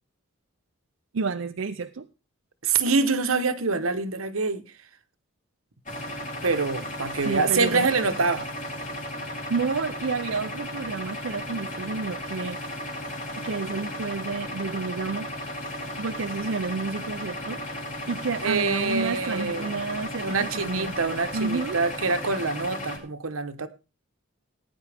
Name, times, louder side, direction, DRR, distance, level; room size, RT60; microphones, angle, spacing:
voice 1, 1.1-2.1 7.2-7.9 9.3-12.6 13.4-15.3 16.0-17.6 18.1-20.9 21.3-21.8, right 4 dB, 70° right, 0.6 m, -30 dB
voice 2, 2.6-4.6 6.4-8.5 18.4-19.8 20.2-23.7, right 4 dB, 90° right, 1.2 m, -25 dB
sound 1, 5.9-23.0, left 1 dB, 40° left, 4.0 m, -35 dB
18.0 x 9.5 x 3.5 m
head